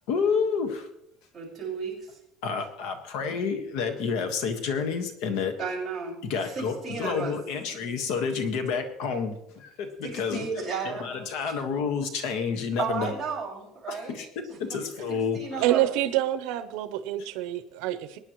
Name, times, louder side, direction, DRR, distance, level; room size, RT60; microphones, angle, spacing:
voice 1, 0.1-0.9 2.4-5.5 6.2-13.2 13.9-15.6, left 5 dB, 70° left, 7 dB, 1.5 m, -29 dB
voice 2, 1.3-2.2 5.6-7.4 10.0-11.1 12.8-14.2 14.5-14.8 15.1-15.9, right 5 dB, 5° right, -8 dB, 5.4 m, -34 dB
voice 3, 15.6-18.2, right 14 dB, 75° right, 11 dB, 0.8 m, -27 dB
22.5 x 9.9 x 3.1 m, 0.78 s
cardioid pair, 175°, 0 cm